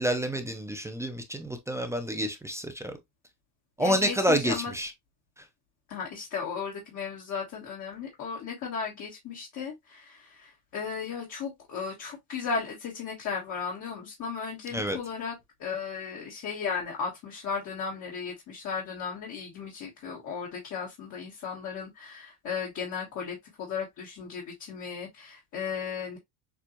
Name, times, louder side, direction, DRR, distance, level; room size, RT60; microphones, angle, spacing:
voice 1, 0.0-3.0 3.8-4.9 5.4-5.5 14.7-15.0, right 1 dB, 5° right, 0.4 m, -28 dB
voice 2, 3.8-4.7 5.9-15.3 15.6-26.2, left 6 dB, 45° left, 1.4 m, -35 dB
6.8 x 2.3 x 2.9 m
cardioid pair, 155°, 41 cm